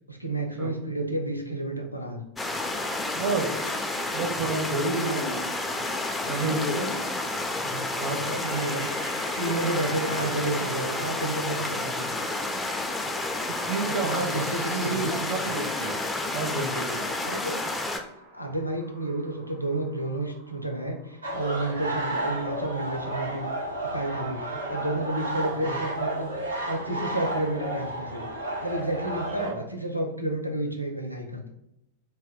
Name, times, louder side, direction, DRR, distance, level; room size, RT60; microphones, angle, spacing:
voice 1, 0.1-2.2 5.0-5.3 6.7-7.0 7.6-7.8 8.1-12.1 13.9-15.2 16.9-17.6 18.3-24.4 24.7-26.3 26.6-28.2 28.6-31.5, right 1 dB, 90° left, 3 dB, 0.4 m, -31 dB
sound 1, 2.4-18.0, left 2 dB, 10° left, 0.3 m, -30 dB
voice 2, 3.1-3.5 4.1-5.8 6.3-6.8 8.0-8.2 13.7-14.2 14.7-16.0 16.3-17.0 24.5-24.7 25.4-25.7 29.4-29.6, right 3 dB, 40° right, 2 dB, 0.6 m, -30 dB
sound 2, 8.2-23.8, right 1 dB, 65° right, 1.0 m, -48 dB
sound 3, 21.2-29.5, right 1 dB, 80° right, 0.6 m, -32 dB
2.1 x 2.1 x 3.4 m, 0.82 s
figure-of-eight pair, 90°, 0 cm